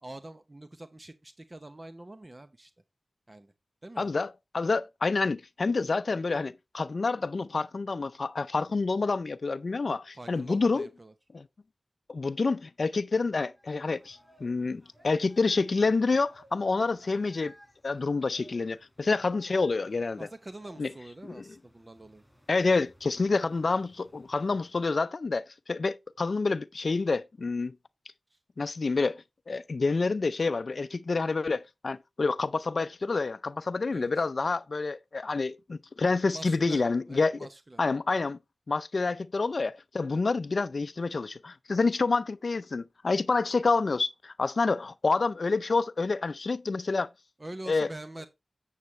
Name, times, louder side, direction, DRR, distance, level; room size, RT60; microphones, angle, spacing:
voice 1, 0.0-2.7 3.3-3.5 3.8-4.1 10.1-11.1 20.2-22.2 28.3-28.4 33.9-34.2 36.3-37.8 47.4-48.3, right 1 dB, 35° right, 0.8 m, -45 dB
voice 2, 4.0-10.9 11.3-11.4 12.1-17.5 17.8-20.2 20.8-20.9 21.2-21.4 22.5-27.7 28.6-29.2 29.5-37.3 37.8-38.4 38.7-47.1 47.7-47.9, left 3 dB, 65° left, 0.5 m, -28 dB
sound 1, 13.5-24.7, equal, 5° left, 5.4 m, -60 dB
8.2 x 7.3 x 3.1 m
cardioid pair, 45°, 0 cm